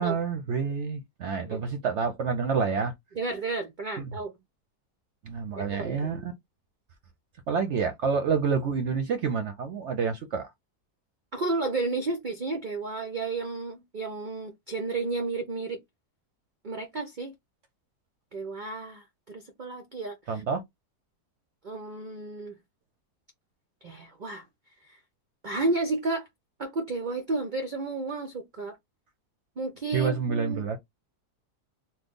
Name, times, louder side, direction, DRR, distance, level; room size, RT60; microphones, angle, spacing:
voice 1, 0.0-2.9 4.0-4.1 5.2-6.3 7.5-10.5 20.3-20.6 29.9-30.8, right 5 dB, 65° right, 0.7 m, -28 dB
voice 2, 3.1-4.4 5.6-6.0 11.3-15.8 16.6-17.3 18.3-20.4 21.6-22.5 23.8-24.4 25.4-26.3 26.6-28.8 29.6-30.6, right 3 dB, 90° right, 0.4 m, -32 dB
3.1 x 2.2 x 3.6 m
omnidirectional pair, 1.7 m